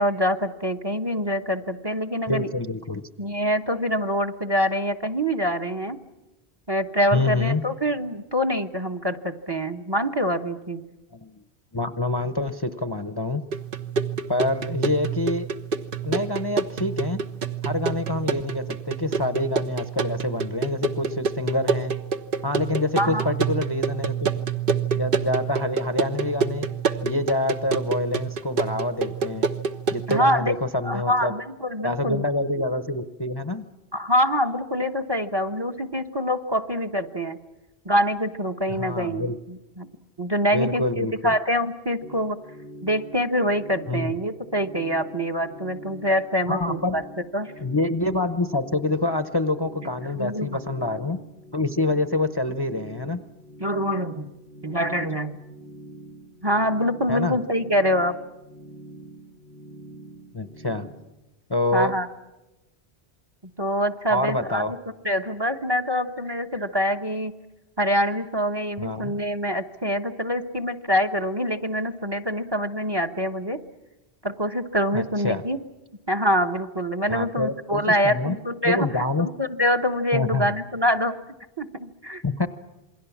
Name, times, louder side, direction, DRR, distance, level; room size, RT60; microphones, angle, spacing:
voice 1, 0.0-2.5 3.2-6.0 6.7-10.8 23.0-23.3 30.1-30.5 30.8-32.2 33.9-37.4 37.8-39.9 40.2-42.4 42.8-47.0 47.3-47.5 50.2-50.6 53.6-54.3 54.6-55.4 56.4-58.2 61.7-62.1 63.6-64.8 65.0-67.3 67.8-73.6 74.2-75.6 76.1-81.1 81.6-82.2, equal, 25° right, 8 dB, 1.1 m, -25 dB
voice 2, 2.3-3.0 7.1-7.6 11.1-11.4 11.7-13.4 14.3-15.5 16.0-17.2 17.6-21.9 22.4-24.3 24.9-26.7 27.0-29.5 29.9-31.3 31.8-33.6 38.7-39.4 40.5-41.4 43.9-44.1 46.5-47.0 47.6-51.2 51.5-53.2 57.1-57.4 60.3-60.9 61.5-61.9 64.1-64.7 68.8-69.1 74.9-75.4 77.1-78.4 78.6-79.3 80.1-80.6 82.2-82.5, left 2 dB, 25° left, 9 dB, 0.8 m, -26 dB
sound 1, 13.5-30.3, right 6 dB, 55° right, 1.2 m, -28 dB
sound 2, 42.0-60.9, right 1 dB, 75° right, 2.7 m, -44 dB
28.0 x 21.5 x 7.2 m, 1.0 s
omnidirectional pair, 1.1 m